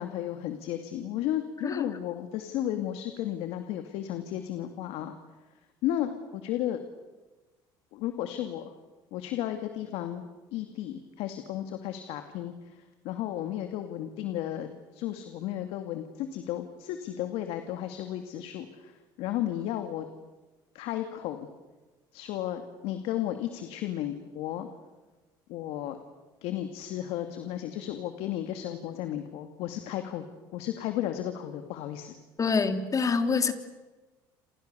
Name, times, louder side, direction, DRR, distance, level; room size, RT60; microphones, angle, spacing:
voice 1, 0.0-5.1 5.8-6.8 7.9-8.7 9.1-10.2 10.5-12.8 13.0-20.0 20.7-21.5 22.1-24.7 25.5-26.0 26.4-30.2 30.5-32.2, left 12 dB, 75° left, 7 dB, 2.4 m, -34 dB
voice 2, 32.4-33.5, left 5 dB, 35° left, 8 dB, 3.3 m, -26 dB
29.0 x 27.5 x 7.0 m, 1.2 s
supercardioid pair, 85°, 10 cm